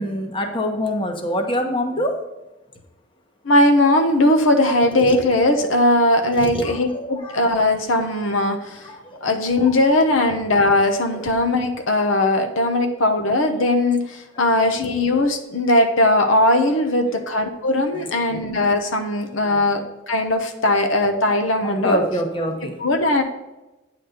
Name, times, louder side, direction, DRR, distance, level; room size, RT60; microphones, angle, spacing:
voice 1, 0.0-2.2 5.0-5.2 6.3-7.5 8.9-9.2 9.6-9.7 11.1-11.3 12.8-12.9 17.9-18.2 19.5-19.6 21.6-22.8, equal, 25° left, 3 dB, 1.2 m, -26 dB
voice 2, 3.4-8.9 9.2-22.0 22.8-23.2, left 1 dB, 75° left, 6 dB, 1.0 m, -19 dB
9.4 x 4.2 x 6.5 m, 1.0 s
head